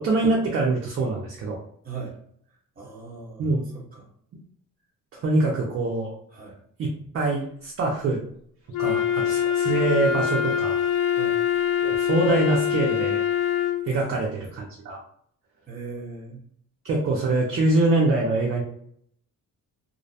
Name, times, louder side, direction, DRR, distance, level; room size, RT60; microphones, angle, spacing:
voice 1, 0.0-1.6 3.4-3.7 5.1-6.1 6.8-6.9 7.1-8.2 8.8-10.8 11.8-13.2 13.9-15.0 16.8-18.6, right 2 dB, 45° right, -1 dB, 0.4 m, -24 dB
voice 2, 1.8-2.2 2.8-4.1 6.3-6.6 8.8-9.1 11.1-11.4 13.9-14.2 15.7-16.4, right 4 dB, 25° right, -3 dB, 0.9 m, -39 dB
Wind instrument woodwind instrument, 8.7-13.9, left 9 dB, 70° left, 0.5 m, -24 dB
2.5 x 2.0 x 2.7 m, 0.66 s
wide cardioid pair, 165°, 32 cm